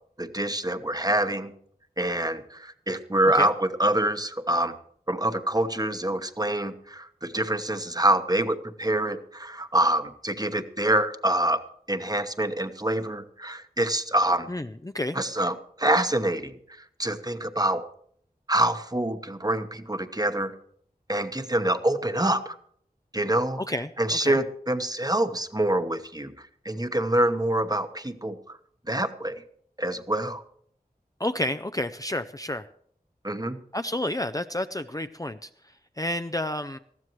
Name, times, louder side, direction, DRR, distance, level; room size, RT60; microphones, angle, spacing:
voice 1, 0.2-1.5 2.0-4.7 5.1-11.6 11.9-14.5 15.1-16.5 17.0-17.8 18.5-20.5 21.1-22.5 23.1-23.6 24.0-26.3 26.6-28.6 28.9-29.4 29.8-30.4 33.2-33.6, right 1 dB, 25° right, 9 dB, 1.1 m, -26 dB
voice 2, 14.5-15.2 23.6-24.4 31.2-32.7 33.7-35.5 36.0-36.8, left 1 dB, 20° left, 9 dB, 0.5 m, -30 dB
20.5 x 14.5 x 3.1 m, 0.64 s
wide cardioid pair, 50°, 16 cm